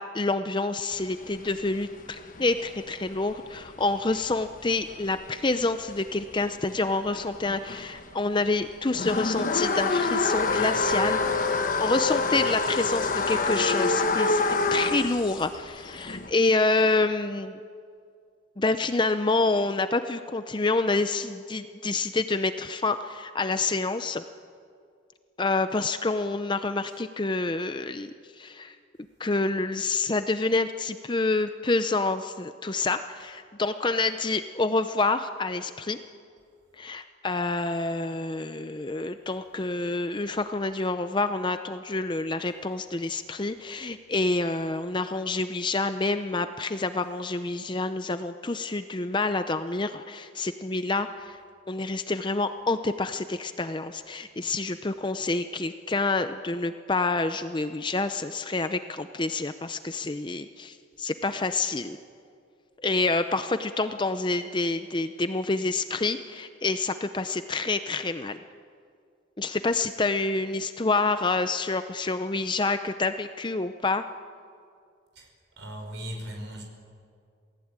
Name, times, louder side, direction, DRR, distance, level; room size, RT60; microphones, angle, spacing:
voice 1, 0.0-14.4 14.7-17.6 18.6-24.2 25.4-28.1 28.4-28.8 29.2-36.0 36.8-51.4 51.7-62.0 62.8-68.4 69.4-74.0, left 3 dB, 25° left, 9 dB, 0.6 m, -27 dB
sound 1, 0.9-8.0 8.4-16.3, left 3 dB, 45° left, 1.4 m, -27 dB
voice 2, 75.6-76.6, equal, 70° right, 2 dB, 5.4 m, -37 dB
27.5 x 18.5 x 8.9 m, 2.3 s
head